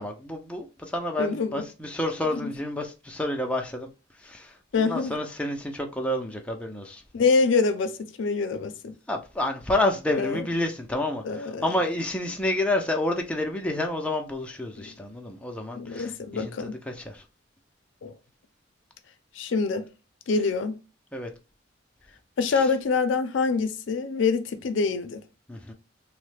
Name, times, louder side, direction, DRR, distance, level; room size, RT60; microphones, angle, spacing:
voice 1, 0.0-3.9 4.2-7.0 9.1-17.2 21.1-21.3 22.5-22.7 25.5-25.7, left 1 dB, 5° left, 0.4 m, -29 dB
voice 2, 1.2-1.6 2.4-2.5 4.7-5.1 7.1-8.9 10.1-10.5 11.2-11.7 14.8-14.9 15.7-16.8 18.0-18.1 19.4-19.8 20.3-20.8 22.4-25.2, left 4 dB, 75° left, 0.4 m, -25 dB
3.1 x 2.1 x 3.2 m
head